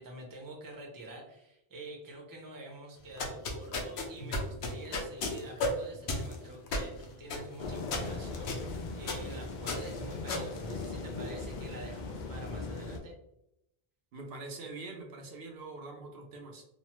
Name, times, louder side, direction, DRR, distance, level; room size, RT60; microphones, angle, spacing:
voice 1, 0.0-13.1, right 2 dB, 25° right, -1 dB, 0.6 m, -47 dB
sound 1, 3.0-11.4, left 2 dB, 90° left, 0.9 m, -36 dB
sound 2, 7.6-13.0, left 3 dB, 60° left, 0.6 m, -39 dB
voice 2, 14.1-16.6, right 3 dB, 70° right, 1 dB, 0.8 m, -44 dB
3.1 x 2.1 x 2.9 m, 0.84 s
omnidirectional pair, 1.1 m